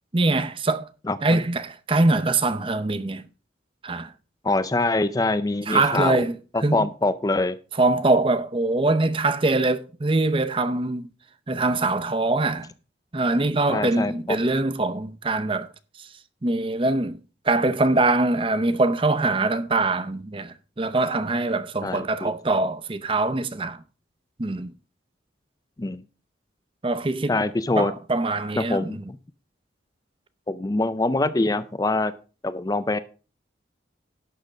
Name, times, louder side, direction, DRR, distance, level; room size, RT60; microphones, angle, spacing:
voice 1, 0.1-0.9 1.2-3.3 3.8-4.1 5.7-6.9 7.8-11.1 11.5-12.7 13.1-15.7 16.0-16.1 16.4-17.2 17.4-23.8 24.4-24.7 26.8-27.4 27.8-29.0, right 2 dB, 25° right, 0.6 m, -23 dB
voice 2, 4.4-6.2 6.7-7.6 13.7-14.4 21.8-22.3 25.8-26.0 27.3-27.9 28.6-29.0 30.5-32.1 32.4-33.0, left 2 dB, 20° left, 0.4 m, -24 dB
11.5 x 6.6 x 4.9 m
head